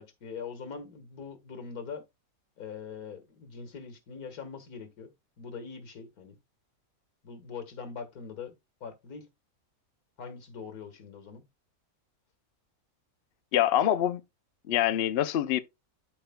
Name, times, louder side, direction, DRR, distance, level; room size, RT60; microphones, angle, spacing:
voice 1, 0.0-2.0 2.6-5.1 5.4-6.4 7.2-8.5 8.8-9.3 10.2-11.4, left 5 dB, 85° left, 2.0 m, -42 dB
voice 2, 13.5-14.2 14.7-15.6, left 11 dB, 60° left, 0.7 m, -25 dB
13.0 x 4.6 x 2.2 m
omnidirectional pair, 1.5 m